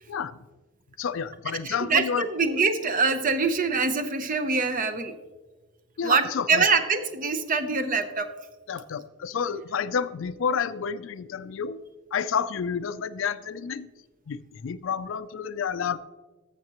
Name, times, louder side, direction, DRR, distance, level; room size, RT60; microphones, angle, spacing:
voice 1, 0.1-0.4 1.0-2.3 6.0-6.7 8.7-11.8 12.1-13.9 14.3-16.0, left 6 dB, 70° left, 15 dB, 0.4 m, -30 dB
voice 2, 1.6-5.1 6.0-8.3, right 4 dB, 40° right, 10 dB, 0.7 m, -24 dB
12.5 x 7.3 x 3.0 m, 1.2 s
head